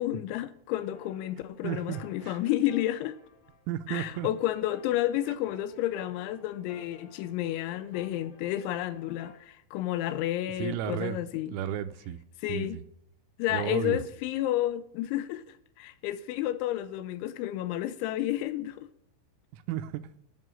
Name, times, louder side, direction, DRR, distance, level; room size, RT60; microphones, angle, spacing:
voice 1, 0.0-3.2 3.9-11.6 12.4-12.8 13.4-18.9, left 13 dB, 85° left, 2.8 m, -31 dB
sound 1, 0.8-9.5, left 5 dB, 60° left, 2.1 m, -54 dB
voice 2, 1.6-2.4 3.7-4.3 10.6-11.2 11.5-12.2 12.5-12.8 13.5-14.0 19.5-20.2, right 10 dB, 85° right, 3.2 m, -33 dB
11.0 x 5.9 x 8.9 m
omnidirectional pair, 5.6 m